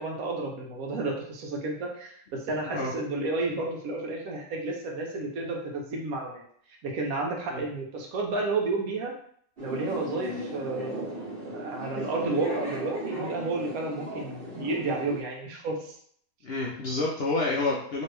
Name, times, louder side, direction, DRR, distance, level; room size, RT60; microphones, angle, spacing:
voice 1, 0.0-6.4 6.7-9.1 9.6-16.0, right 3 dB, 75° right, 1 dB, 1.1 m, -31 dB
sound 1, 9.6-15.2, right 1 dB, 45° right, 1.1 m, -36 dB
voice 2, 16.4-18.0, left 2 dB, 65° left, -3 dB, 0.6 m, -29 dB
2.8 x 2.6 x 3.2 m, 0.62 s
omnidirectional pair, 1.5 m